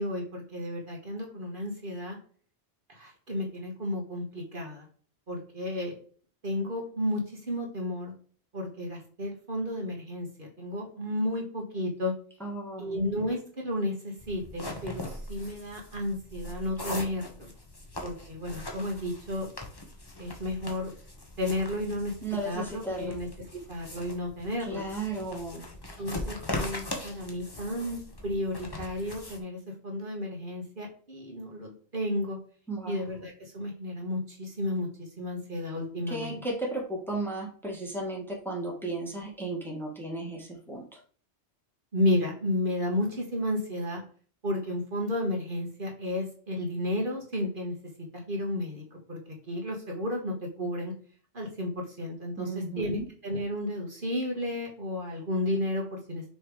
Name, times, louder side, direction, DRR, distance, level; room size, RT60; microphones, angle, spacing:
voice 1, 0.0-2.2 2.9-4.8 5.3-5.9 6.4-8.1 8.5-12.1 12.8-17.5 18.0-19.5 20.2-20.9 21.4-22.1 22.4-24.8 25.5-25.6 26.0-32.4 32.9-36.4 41.9-44.0 44.4-49.2 49.5-50.9 51.3-56.2, left 1 dB, 50° right, 0 dB, 1.6 m, -32 dB
voice 2, 12.4-13.0 22.2-23.2 24.7-25.6 32.7-33.2 36.1-41.0 52.4-53.0, right 2 dB, ahead, -1 dB, 1.6 m, -35 dB
sound 1, 14.2-29.4, left 2 dB, 20° left, 1.1 m, -40 dB
6.3 x 3.3 x 4.8 m, 0.43 s
omnidirectional pair, 1.2 m